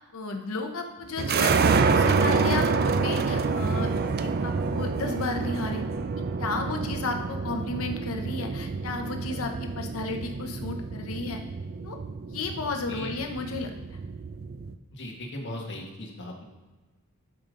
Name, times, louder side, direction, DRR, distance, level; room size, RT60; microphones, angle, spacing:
voice 1, 0.1-1.6 1.9-3.9 4.2-5.8 6.4-11.4 11.8-12.0 12.3-13.7, left 3 dB, 75° left, 4 dB, 0.8 m, -33 dB
sound 1, 1.2-14.7, right 4 dB, 45° right, 0.4 m, -27 dB
voice 2, 14.9-16.4, left 1 dB, 55° left, 0 dB, 1.6 m, -38 dB
11.5 x 5.2 x 3.8 m, 1.2 s
head